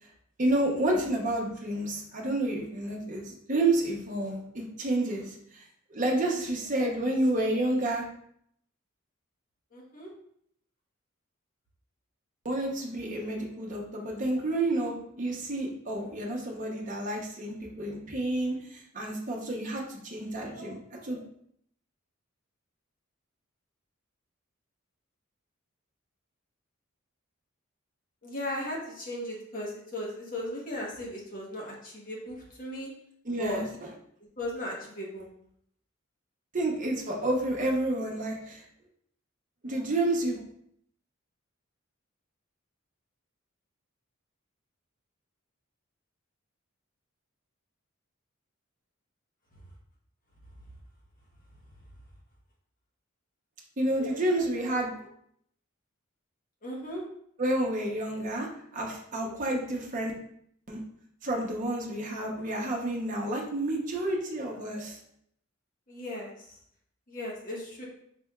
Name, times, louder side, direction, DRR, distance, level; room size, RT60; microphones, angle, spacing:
voice 1, 0.4-5.6 5.9-8.0 12.4-21.2 33.2-33.7 36.5-38.6 39.6-40.4 53.8-55.1 57.4-60.1 60.7-60.8 61.2-65.0, right 1 dB, 40° right, 0 dB, 0.7 m, -30 dB
voice 2, 9.7-10.1 28.2-32.9 33.3-33.6 34.4-35.3 56.6-57.0 65.9-66.3 67.1-67.8, left 1 dB, 40° left, -3 dB, 1.1 m, -36 dB
4.4 x 3.3 x 2.3 m, 0.69 s
head